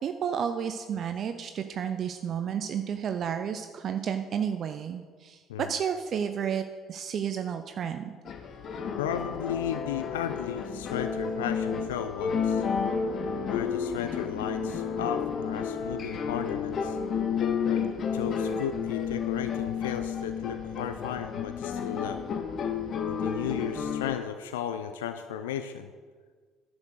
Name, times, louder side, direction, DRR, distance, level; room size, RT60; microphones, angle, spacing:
voice 1, 0.0-8.1, right 8 dB, 50° right, 8 dB, 0.6 m, -31 dB
sound 1, 8.3-24.2, left 6 dB, 50° left, 1.0 m, -31 dB
voice 2, 9.0-12.6 13.5-17.0 17.6-22.2 23.1-25.9, left 9 dB, 80° left, 9 dB, 0.4 m, -35 dB
10.5 x 6.2 x 6.5 m, 1.5 s
hypercardioid pair, 55°, 0 cm